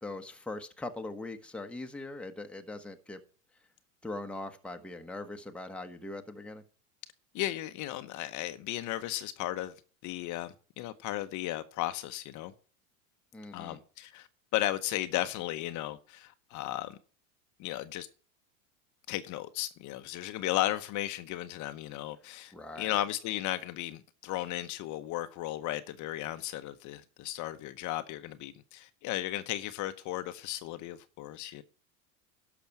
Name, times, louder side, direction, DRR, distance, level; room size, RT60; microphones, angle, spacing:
voice 1, 0.0-3.2 4.0-6.6 13.3-13.8 22.5-23.0, left 2 dB, 5° left, 1.1 m, -41 dB
voice 2, 7.3-9.7 10.0-12.5 13.5-14.3 14.5-17.0 17.6-18.1 19.1-31.6, left 15 dB, 45° left, 0.9 m, -35 dB
11.5 x 6.1 x 5.9 m
hypercardioid pair, 110°, 42 cm